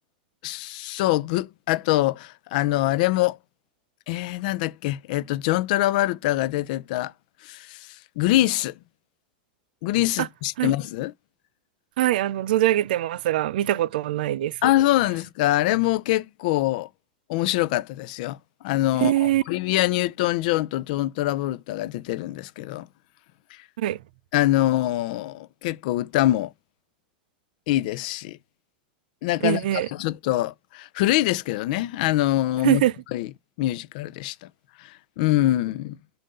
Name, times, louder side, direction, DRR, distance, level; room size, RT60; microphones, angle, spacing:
voice 1, 0.4-3.4 4.1-7.1 7.4-8.7 9.8-11.1 14.6-16.9 17.3-18.4 18.6-22.9 24.3-26.5 27.7-28.4 29.2-32.8 33.1-33.3 33.6-34.5 34.8-36.0, left 16 dB, 60° left, 0.4 m, -24 dB
voice 2, 12.0-14.7 19.0-19.4 23.8-24.0 29.4-29.9 32.6-32.9, right 14 dB, 70° right, 0.4 m, -22 dB
7.7 x 2.6 x 5.3 m
supercardioid pair, 140°, 5 cm